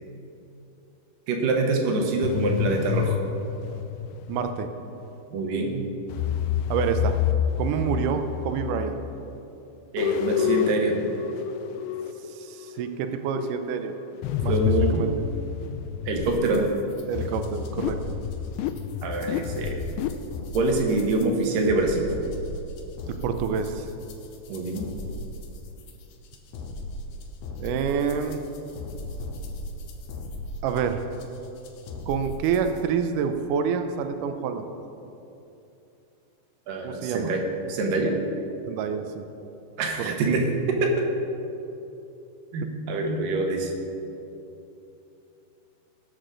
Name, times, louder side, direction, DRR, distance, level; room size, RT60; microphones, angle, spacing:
voice 1, 1.3-3.2 5.3-5.8 9.9-11.1 14.5-15.2 16.1-16.7 19.0-19.8 20.5-22.1 24.5-24.9 36.7-37.4 37.7-38.2 39.8-41.1 42.5-43.7, right 2 dB, 70° right, 2 dB, 2.6 m, -25 dB
sound 1, 2.2-4.8 6.1-9.4 10.0-16.5 17.2-20.1, left 8 dB, 90° left, 2.6 m, -29 dB
voice 2, 4.3-4.7 6.7-7.1 7.6-9.0 12.3-13.9 14.4-14.5 14.9-15.1 17.1-18.0 23.2-23.9 27.6-28.4 30.6-31.0 32.1-34.7 36.8-37.3 38.7-39.2 40.1-40.2, right 7 dB, 90° right, 7 dB, 1.8 m, -27 dB
sound 2, 16.1-32.8, left 1 dB, 75° left, 2.3 m, -38 dB
18.5 x 6.6 x 3.9 m, 2.9 s
omnidirectional pair, 4.5 m